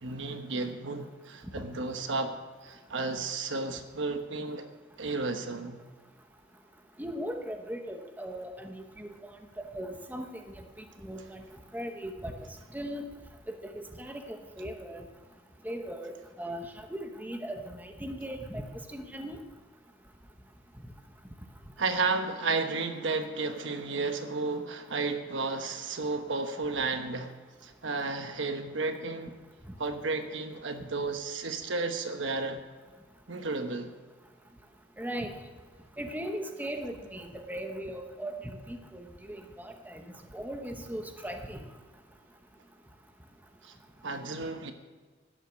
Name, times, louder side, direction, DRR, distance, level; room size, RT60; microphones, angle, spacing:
voice 1, 0.0-2.3 2.6-4.7 5.0-5.8 21.8-27.3 27.6-29.3 29.8-32.6 33.3-33.9 43.6-43.7 44.0-44.7, right 3 dB, 70° right, 7 dB, 1.1 m, -32 dB
voice 2, 7.0-11.4 11.7-12.4 12.7-13.1 13.5-15.1 15.6-18.6 18.9-19.4 35.0-35.3 36.0-40.0 40.3-41.6, equal, 10° right, 4 dB, 1.0 m, -38 dB
12.0 x 10.0 x 6.3 m, 1.4 s
head